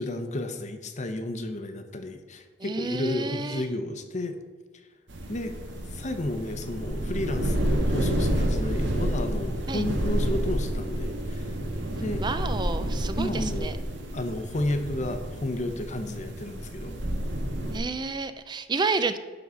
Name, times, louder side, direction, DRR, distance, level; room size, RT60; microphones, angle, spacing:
voice 1, 0.0-4.4 5.3-5.5 5.9-11.5 12.0-12.2 13.1-13.7 14.1-16.9, left 1 dB, 40° left, 7 dB, 0.8 m, -32 dB
voice 2, 2.6-3.7 9.7-9.8 12.2-13.7 17.7-19.2, right 4 dB, 25° right, 11 dB, 0.4 m, -30 dB
sound 1, 5.1-17.8, right 1 dB, 70° right, 1.4 m, -29 dB
11.0 x 3.9 x 6.9 m, 1.5 s
head